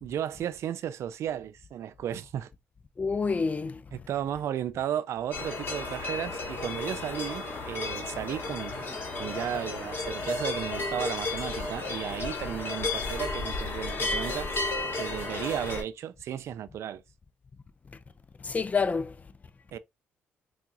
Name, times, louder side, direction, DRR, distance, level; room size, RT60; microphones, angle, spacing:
voice 1, 0.0-2.5 3.9-14.5 15.0-17.0 19.7-19.8, right 10 dB, 60° right, 0.3 m, -34 dB
voice 2, 3.0-3.8 18.4-19.1, left 5 dB, 30° left, 0.5 m, -28 dB
sound 1, 5.3-15.8, left 3 dB, 45° left, 1.7 m, -33 dB
4.6 x 2.4 x 2.8 m
supercardioid pair, 65°, 5 cm